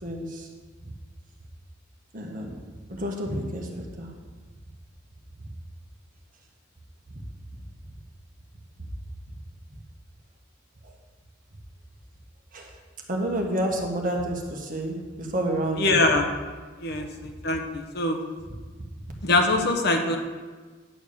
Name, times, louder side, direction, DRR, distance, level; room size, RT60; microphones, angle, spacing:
voice 1, 0.0-0.5 2.1-2.5 2.9-4.1 12.5-12.7 13.1-16.0 17.0-17.1, right 1 dB, 45° right, 1 dB, 1.5 m, -29 dB
voice 2, 15.8-16.3 16.8-18.2 19.2-20.2, left 2 dB, 55° left, 4 dB, 1.1 m, -23 dB
10.0 x 4.8 x 6.9 m, 1.4 s
head